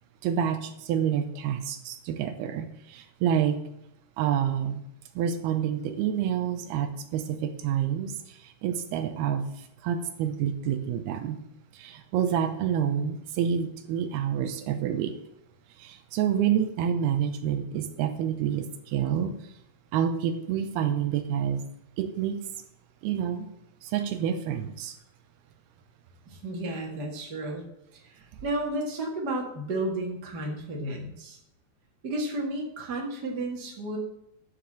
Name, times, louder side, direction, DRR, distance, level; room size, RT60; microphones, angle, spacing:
voice 1, 0.2-3.6 4.2-4.8 5.2-11.4 11.7-15.2 15.8-19.5 19.9-21.6 22.0-22.4 23.0-23.5 23.8-25.0, right 9 dB, 85° right, 7 dB, 2.7 m, -28 dB
voice 2, 26.3-31.4 32.0-34.0, right 1 dB, 40° right, -1 dB, 1.5 m, -33 dB
11.5 x 5.1 x 7.2 m, 0.80 s
omnidirectional pair, 4.5 m